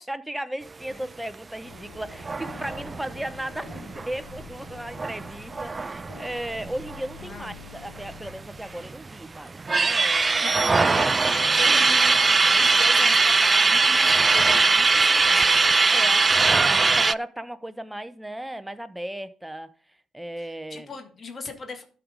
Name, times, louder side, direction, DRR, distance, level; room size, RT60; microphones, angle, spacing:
voice 1, 0.0-10.5 15.9-19.7 20.1-20.9, right 1 dB, 5° right, 0.8 m, -36 dB
sound 1, 1.6-9.6, left 5 dB, 75° left, 2.2 m, -47 dB
sound 2, 2.2-7.3 7.6-7.7 8.0-8.9 9.4-17.1, right 4 dB, 30° right, 0.3 m, -21 dB
voice 2, 7.2-7.5 10.4-15.7 20.4-21.8, left 4 dB, 40° left, 1.9 m, -38 dB
12.5 x 4.8 x 5.1 m
hypercardioid pair, 55°, 0 cm